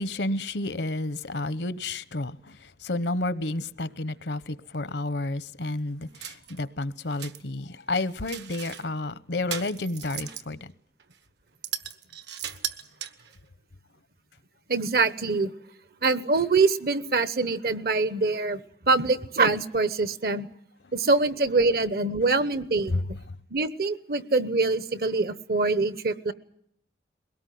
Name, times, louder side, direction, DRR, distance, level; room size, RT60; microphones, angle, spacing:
voice 1, 0.0-10.7 22.9-23.0, left 2 dB, 75° left, 16 dB, 0.9 m, -31 dB
sound 1, 6.1-6.6 7.0-7.4 7.9-8.9 9.5-10.5 11.0-11.2 11.6-13.4, right 10 dB, 70° right, 1.3 m, -37 dB
voice 2, 14.7-15.5 16.0-18.6 18.9-20.5 20.9-23.0 23.5-26.3, right 3 dB, 55° right, 15 dB, 1.0 m, -24 dB
22.0 x 18.0 x 9.4 m, 0.70 s
head